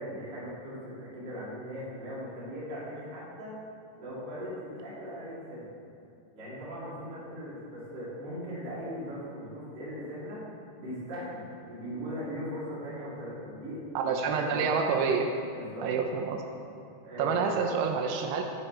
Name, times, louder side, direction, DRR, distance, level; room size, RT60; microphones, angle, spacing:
voice 1, 0.0-3.6 4.0-5.7 6.3-10.4 10.8-14.8 15.5-15.9 17.0-17.5, equal, 45° right, -8 dB, 1.5 m, -39 dB
voice 2, 14.0-15.3 15.8-16.4 17.2-18.4, right 5 dB, 85° right, 3 dB, 2.5 m, -28 dB
7.3 x 5.5 x 4.2 m, 2.5 s
omnidirectional pair, 4.8 m